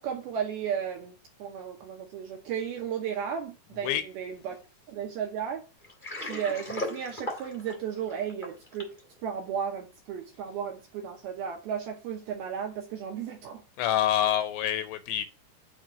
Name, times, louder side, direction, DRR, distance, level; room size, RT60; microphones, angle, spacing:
voice 1, 0.0-4.6 4.9-5.6 6.2-8.9 9.2-13.6, right 8 dB, 75° right, 2.3 m, -34 dB
Water, 5.8-9.0, left 1 dB, 60° left, 0.5 m, -37 dB
voice 2, 13.8-15.3, left 11 dB, 85° left, 2.6 m, -26 dB
8.2 x 3.6 x 6.2 m
omnidirectional pair, 5.5 m